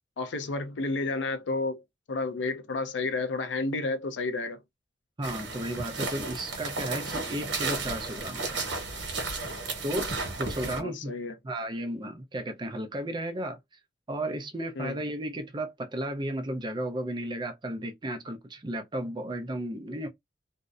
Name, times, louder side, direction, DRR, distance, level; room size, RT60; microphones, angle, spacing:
voice 1, 0.2-1.8 2.1-4.6 10.6-11.4 14.8-15.0, left 3 dB, 85° left, 0.5 m, -31 dB
voice 2, 5.2-8.6 9.8-11.1 11.4-13.6 14.1-20.1, right 1 dB, 25° right, 0.5 m, -34 dB
sound 1, 5.2-10.8, right 3 dB, 80° right, 1.0 m, -33 dB
2.6 x 2.0 x 2.3 m
head